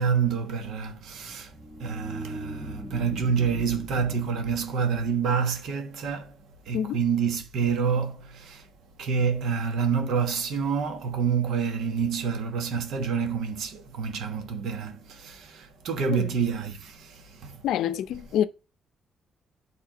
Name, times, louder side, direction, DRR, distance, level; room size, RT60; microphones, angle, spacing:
voice 1, 0.0-6.4 6.6-8.7 9.0-17.6, right 6 dB, 75° right, 1.3 m, -28 dB
sound 1, 1.1-5.6, equal, 15° right, 1.3 m, -40 dB
voice 2, 17.6-18.4, left 10 dB, 80° left, 0.5 m, -26 dB
9.1 x 3.6 x 5.0 m
cardioid pair, 90°, 0 cm